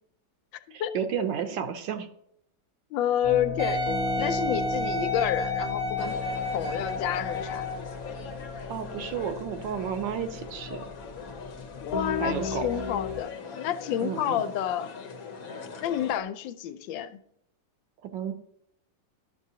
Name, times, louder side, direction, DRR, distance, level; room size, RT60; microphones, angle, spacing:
voice 1, 0.7-2.1 8.7-10.8 12.2-12.7 14.0-14.4 18.0-18.3, right 8 dB, 75° right, 8 dB, 1.4 m, -32 dB
voice 2, 2.9-6.2 6.5-7.8 11.8-14.9 15.8-17.2, left 10 dB, 85° left, 11 dB, 1.3 m, -29 dB
sound 1, 3.2-13.2, left 3 dB, 35° left, 0.8 m, -36 dB
Wind instrument woodwind instrument, 3.6-7.9 8.6-8.7, left 1 dB, 60° right, 1.1 m, -31 dB
sound 2, 6.0-16.2, left 5 dB, 60° left, 1.1 m, -41 dB
12.0 x 6.2 x 2.8 m, 0.73 s
omnidirectional pair, 2.0 m